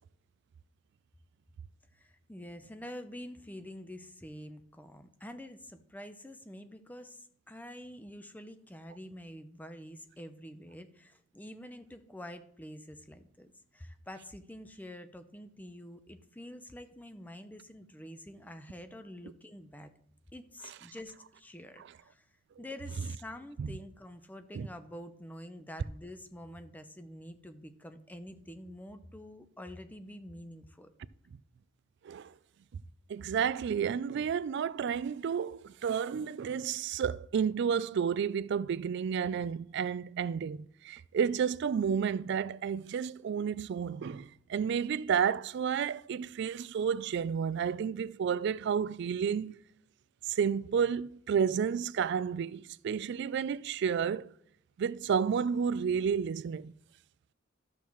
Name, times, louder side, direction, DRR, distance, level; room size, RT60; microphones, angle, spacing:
voice 1, 1.9-19.9 20.3-22.3 22.6-30.9, left 1 dB, 10° left, 0.6 m, -47 dB
voice 2, 33.1-49.6 50.3-54.3 54.8-56.7, right 7 dB, 60° right, 0.3 m, -31 dB
12.5 x 7.1 x 3.1 m
head